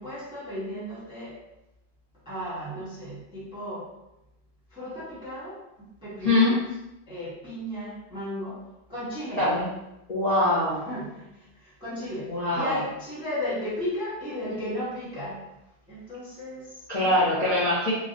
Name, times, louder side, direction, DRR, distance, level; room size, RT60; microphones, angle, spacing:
voice 1, 0.0-1.4 2.2-3.8 4.7-6.6 7.1-8.6 8.9-9.4 10.8-15.4 15.9-17.4, left 1 dB, 5° right, -10 dB, 0.7 m, -35 dB
voice 2, 6.2-6.5 9.4-9.7 10.1-10.8 12.3-12.8 16.9-17.9, left 2 dB, 30° left, -12 dB, 0.7 m, -23 dB
3.8 x 2.5 x 2.6 m, 0.90 s
omnidirectional pair, 2.2 m